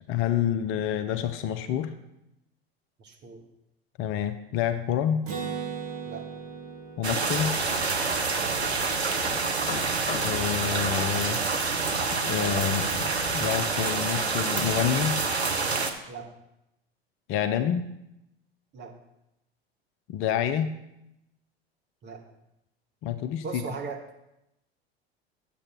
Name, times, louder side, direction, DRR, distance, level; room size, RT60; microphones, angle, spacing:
voice 1, 0.1-1.9 4.0-5.2 7.0-7.5 10.2-11.4 12.1-15.2 17.3-17.9 20.1-20.8 23.0-23.6, left 9 dB, 40° left, 10 dB, 0.7 m, -28 dB
voice 2, 3.0-3.4 6.1-6.3 8.4-8.6 16.1-16.3 18.7-19.0 22.0-22.2 23.4-24.0, right 5 dB, 35° right, 1 dB, 1.8 m, -38 dB
Acoustic guitar, 5.3-8.9, right 6 dB, 65° right, 1.9 m, -38 dB
sound 1, 7.0-15.9, right 4 dB, 85° right, 0.9 m, -27 dB
Hammer, 7.4-14.3, left 6 dB, 65° left, 1.1 m, -43 dB
9.9 x 7.7 x 4.5 m, 0.86 s
figure-of-eight pair, 80°, 32 cm